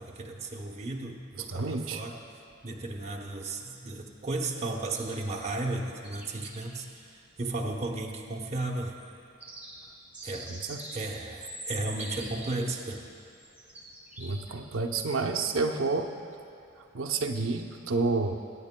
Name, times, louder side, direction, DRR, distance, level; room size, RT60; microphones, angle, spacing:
voice 1, 0.0-2.2 2.6-9.0 10.2-10.6 10.9-13.0, right 2 dB, 30° right, 0 dB, 0.8 m, -34 dB
voice 2, 1.3-2.0 10.5-10.8 14.2-16.1 16.9-18.4, right 3 dB, 90° right, 4 dB, 0.7 m, -29 dB
sound 1, 4.9-5.8 6.0-6.8 9.0-9.1 9.4-12.8 13.1-14.6 15.0-15.1, right 1 dB, 10° right, 1.3 m, -44 dB
23.5 x 9.8 x 2.2 m, 2.7 s
head